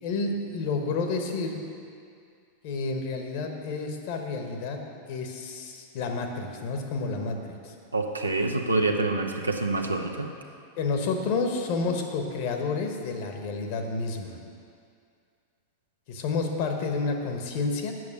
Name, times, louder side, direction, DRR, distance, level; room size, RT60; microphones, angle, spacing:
voice 1, 0.0-1.6 2.6-7.7 10.8-14.4 16.1-17.9, left 4 dB, 50° left, 4 dB, 1.2 m, -30 dB
voice 2, 7.9-10.3, right 2 dB, 80° right, 3 dB, 0.8 m, -26 dB
7.8 x 7.0 x 8.3 m, 2.4 s
figure-of-eight pair, 90°, 0 cm